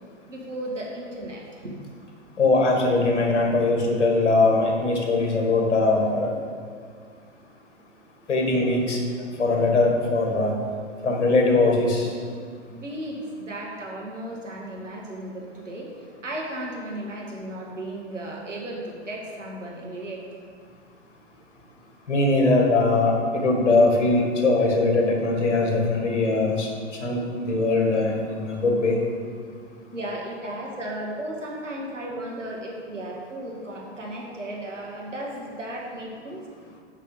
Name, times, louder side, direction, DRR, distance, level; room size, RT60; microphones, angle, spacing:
voice 1, 0.3-1.8 12.7-20.2 29.9-36.5, right 1 dB, 85° right, -3 dB, 2.0 m, -35 dB
voice 2, 2.4-6.3 8.3-9.0 9.4-10.5 11.0-12.1 22.1-26.7 27.0-29.0, left 2 dB, 70° left, 0 dB, 2.1 m, -21 dB
6.7 x 5.8 x 6.5 m, 2.1 s
figure-of-eight pair, 100°, 36 cm